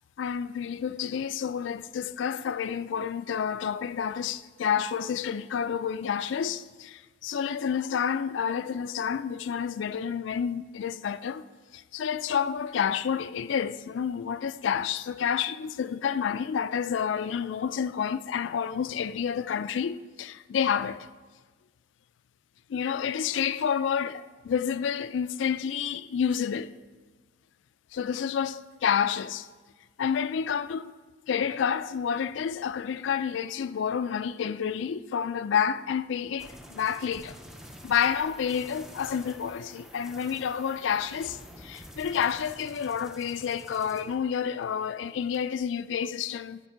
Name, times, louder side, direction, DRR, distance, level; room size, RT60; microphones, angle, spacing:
voice 1, 0.2-11.4 11.7-21.1 22.7-26.7 27.9-29.5 30.0-30.9 31.3-37.4 37.8-46.6, left 7 dB, 70° left, 0.3 m, -29 dB
sound 1, 36.4-44.6 45.0-45.4, equal, 5° right, 0.5 m, -48 dB
12.0 x 5.8 x 4.6 m
head